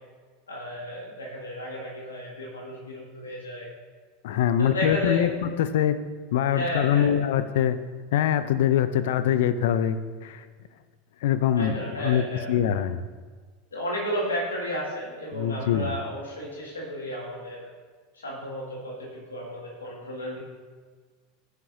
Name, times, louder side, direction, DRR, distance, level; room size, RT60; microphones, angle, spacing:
voice 1, 0.5-3.7 4.6-5.3 6.5-7.1 11.6-12.5 13.7-17.7 18.1-20.4, equal, 90° left, -4 dB, 2.0 m, -33 dB
voice 2, 4.2-6.0 6.3-7.8 8.1-10.5 11.2-13.0 15.3-15.9, left 10 dB, 70° left, 12 dB, 0.5 m, -24 dB
15.5 x 5.9 x 2.7 m, 1.5 s
hypercardioid pair, 90°, 0 cm